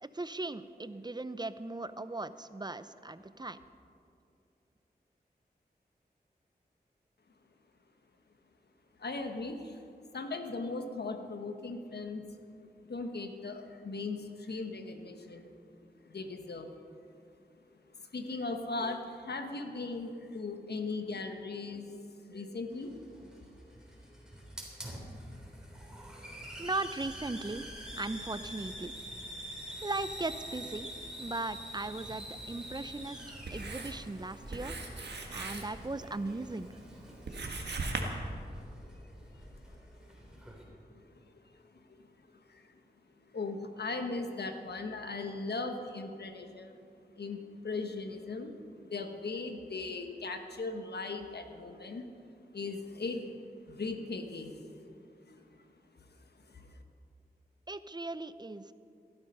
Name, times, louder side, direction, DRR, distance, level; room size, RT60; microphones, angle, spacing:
voice 1, 0.0-3.6 26.6-27.7 28.0-28.9 29.8-30.9 31.2-36.7 57.7-58.7, right 2 dB, 25° right, 13 dB, 0.6 m, -38 dB
voice 2, 9.0-9.8 10.1-12.2 12.8-15.5 16.0-16.7 18.0-22.9 26.5-26.6 37.6-37.7 38.2-38.3 38.8-39.4 39.7-39.8 40.1-42.0 42.3-42.7 43.3-46.8 47.2-52.0 52.5-53.3 53.6-55.4 56.1-56.8, left 3 dB, 75° left, 6 dB, 1.3 m, -39 dB
Hiss, 22.7-40.6, equal, 5° right, 3.6 m, -46 dB
Writing, 31.8-38.0, right 3 dB, 85° right, 1.6 m, -42 dB
17.0 x 11.5 x 5.5 m, 2.5 s
cardioid pair, 50°, 17 cm